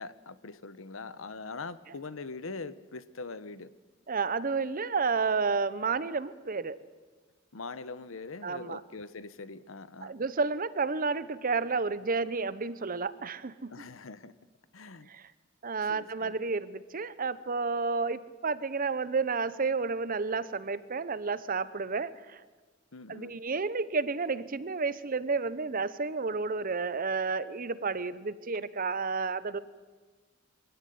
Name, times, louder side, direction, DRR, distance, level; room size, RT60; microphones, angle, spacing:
voice 1, 0.0-3.7 7.5-10.2 13.7-14.3 14.7-15.1 15.9-16.4 22.9-23.4, left 3 dB, 85° left, 15 dB, 1.0 m, -42 dB
voice 2, 4.1-6.8 8.4-8.8 10.0-13.7 15.1-15.3 15.6-22.4 23.1-29.6, right 4 dB, 45° right, 16 dB, 0.9 m, -31 dB
23.5 x 16.5 x 9.4 m, 1.4 s
head